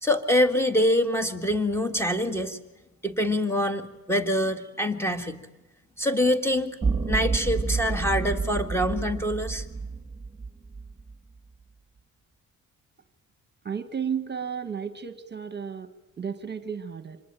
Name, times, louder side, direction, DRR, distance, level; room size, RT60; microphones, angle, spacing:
voice 1, 0.0-2.6 3.0-5.4 6.0-6.8 7.1-9.7, left 1 dB, 10° left, 8 dB, 1.8 m, -25 dB
sound 1, 6.8-11.1, right 4 dB, 15° right, 2.8 m, -29 dB
voice 2, 13.6-17.2, right 7 dB, 35° right, 11 dB, 1.3 m, -33 dB
25.5 x 20.5 x 9.0 m, 1.1 s
cardioid pair, 90°, 30 cm